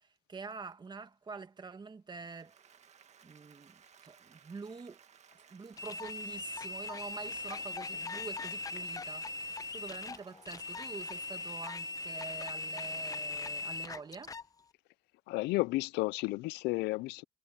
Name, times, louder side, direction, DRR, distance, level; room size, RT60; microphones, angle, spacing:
voice 1, 0.0-2.6 3.2-5.0 5.5-14.4, right 4 dB, 25° right, 1.8 m, -46 dB
Applause, 2.1-13.8, right 7 dB, 40° right, 1.8 m, -62 dB
sound 1, 5.8-14.5, left 3 dB, 20° left, 0.9 m, -40 dB
voice 2, 15.3-17.2, left 21 dB, 85° left, 0.4 m, -32 dB
cardioid pair, 110°, 17 cm